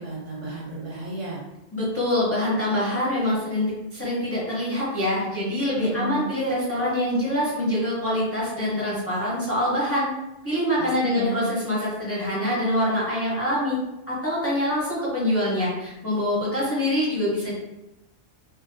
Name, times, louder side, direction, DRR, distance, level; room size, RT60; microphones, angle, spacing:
voice 1, 0.0-1.4 5.8-6.3 10.8-11.5, right 1 dB, 75° right, -6 dB, 0.9 m, -32 dB
voice 2, 1.7-10.1 10.4-13.8 14.1-17.5, left 1 dB, 20° left, -8 dB, 0.4 m, -25 dB
2.6 x 2.1 x 2.5 m, 0.96 s
omnidirectional pair, 1.3 m